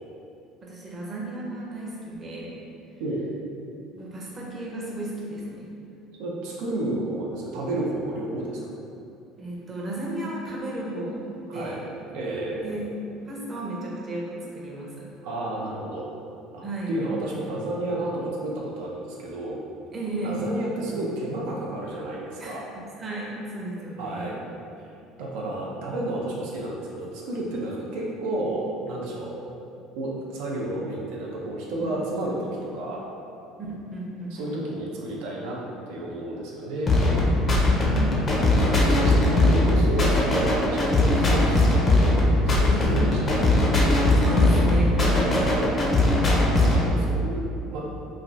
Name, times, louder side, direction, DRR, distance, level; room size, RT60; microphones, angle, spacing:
voice 1, 0.6-2.5 3.9-5.7 9.4-11.9 12.6-12.9 13.2-15.1 16.6-16.9 19.9-20.4 22.4-24.3 31.8-32.2 33.6-34.6 37.3-38.3 38.6-39.2 42.6-42.9 44.2-45.3, right 1 dB, 30° right, -3 dB, 0.6 m, -34 dB
voice 2, 6.2-8.6 11.5-11.8 12.1-12.6 15.2-16.1 16.5-19.6 20.2-22.6 24.0-24.4 25.2-29.4 29.9-33.0 34.3-35.6 35.9-36.9 38.6-42.0 42.3-43.7 45.1-45.7 46.2-47.8, right 1 dB, 85° right, -3 dB, 0.4 m, -31 dB
sound 1, 36.9-46.9, left 1 dB, 30° left, 0.5 m, -20 dB
3.1 x 2.2 x 2.5 m, 2.6 s
cardioid pair, 125°, 0 cm